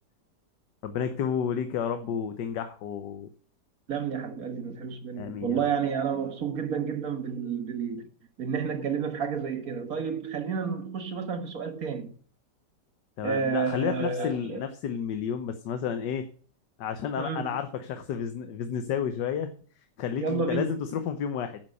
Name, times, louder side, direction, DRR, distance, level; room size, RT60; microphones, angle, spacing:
voice 1, 0.8-3.3 5.2-5.7 13.2-16.3 16.8-19.5 20.0-21.6, left 7 dB, 75° left, 1.5 m, -31 dB
voice 2, 3.9-8.0 8.4-12.1 13.2-14.6 17.2-17.5 20.2-20.7, right 6 dB, 55° right, 1.8 m, -30 dB
9.7 x 7.7 x 6.5 m
omnidirectional pair, 1.9 m